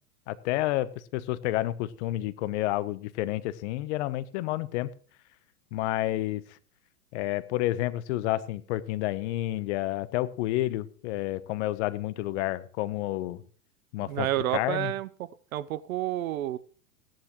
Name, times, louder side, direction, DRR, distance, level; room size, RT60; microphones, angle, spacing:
voice 1, 0.3-4.9 5.7-6.6 7.1-13.4 13.9-14.9, left 16 dB, 50° left, 16 dB, 1.0 m, -30 dB
voice 2, 14.0-16.6, right 14 dB, 65° right, 16 dB, 0.9 m, -30 dB
17.5 x 10.5 x 3.1 m, 0.43 s
hypercardioid pair, 125°, 46 cm